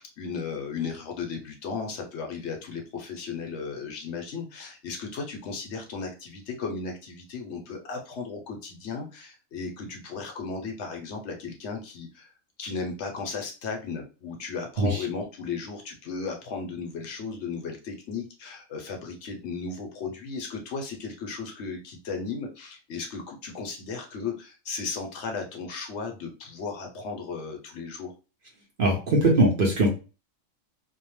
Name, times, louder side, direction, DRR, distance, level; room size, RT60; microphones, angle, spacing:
voice 1, 0.0-12.3 12.6-28.1, left 4 dB, 65° left, 2 dB, 0.8 m, -35 dB
voice 2, 28.8-29.9, right 1 dB, 55° right, 0 dB, 0.7 m, -21 dB
2.7 x 2.1 x 3.0 m, 0.32 s
omnidirectional pair, 1.4 m